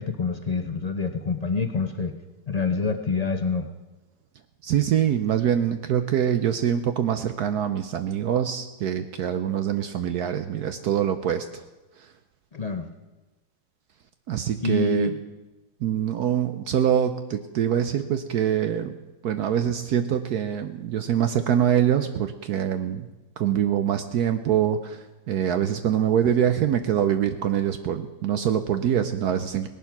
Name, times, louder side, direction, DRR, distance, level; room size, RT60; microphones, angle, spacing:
voice 1, 0.0-2.1 2.5-3.7 12.5-12.9 14.6-15.2, left 4 dB, 55° left, 6 dB, 0.4 m, -26 dB
voice 2, 4.6-11.6 14.3-15.1 15.8-18.9 19.2-23.1 23.4-29.7, right 9 dB, 65° right, 9 dB, 1.1 m, -24 dB
18.0 x 11.0 x 5.9 m, 1.1 s
omnidirectional pair, 1.9 m